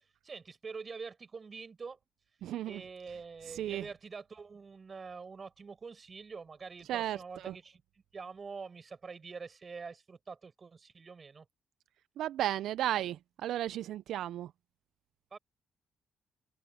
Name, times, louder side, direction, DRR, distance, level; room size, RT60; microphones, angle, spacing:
voice 1, 0.2-2.0 2.7-7.8 8.1-11.5 15.3-15.4, right 5 dB, 35° right, 7.5 m, -45 dB
voice 2, 2.4-2.8 3.5-3.8 6.9-7.6 12.2-14.5, right 12 dB, 80° right, 0.4 m, -34 dB
cardioid pair, 90°, 0 cm